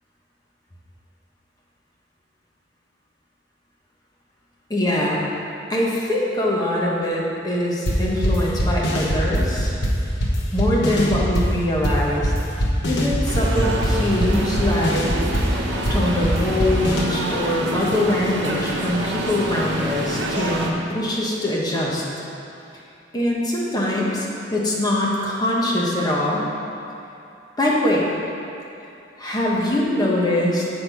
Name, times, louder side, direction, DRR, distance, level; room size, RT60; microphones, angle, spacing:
voice 1, 4.7-5.2 5.7-9.7 10.5-12.3 12.8-15.0 15.9-22.0 23.1-26.5 27.6-28.1 29.2-30.6, left 1 dB, 20° left, -4 dB, 1.1 m, -23 dB
sound 1, 7.9-17.0, equal, 80° left, 1.1 m, -22 dB
sound 2, 13.3-20.7, right 1 dB, 90° right, 0.9 m, -27 dB
7.3 x 6.0 x 4.7 m, 2.7 s
head